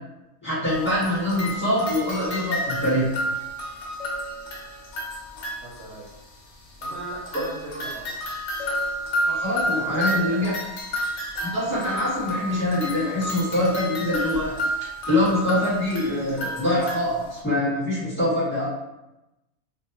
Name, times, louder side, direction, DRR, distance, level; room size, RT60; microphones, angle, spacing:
voice 1, 0.4-3.1 9.2-10.5 11.4-14.5 14.8-18.7, left 1 dB, 10° left, -9 dB, 1.0 m, -24 dB
sound 1, 0.7-6.1 6.8-17.4, equal, 65° left, 0.7 m, -31 dB
voice 2, 5.6-6.1 6.8-8.2 9.7-10.5, right 2 dB, 65° right, -7 dB, 0.7 m, -39 dB
2.4 x 2.1 x 2.8 m, 0.96 s
omnidirectional pair, 1.5 m